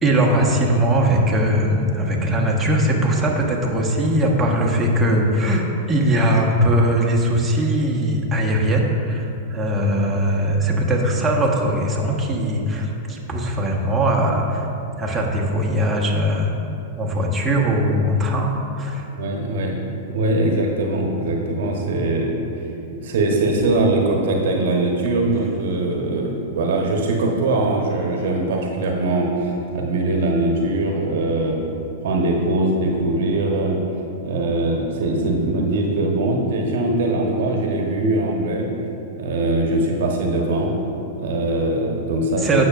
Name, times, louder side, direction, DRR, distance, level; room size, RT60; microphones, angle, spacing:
voice 1, 0.0-14.7 15.0-16.5 17.0-19.1 42.4-42.7, right 1 dB, 15° right, -2 dB, 1.4 m, -20 dB
voice 2, 19.2-22.4 22.9-31.6 32.0-33.8 34.2-38.7 39.1-40.7 41.2-42.6, right 2 dB, 60° right, 1 dB, 1.2 m, -21 dB
16.5 x 6.2 x 2.5 m, 2.8 s
figure-of-eight pair, 100°, 0 cm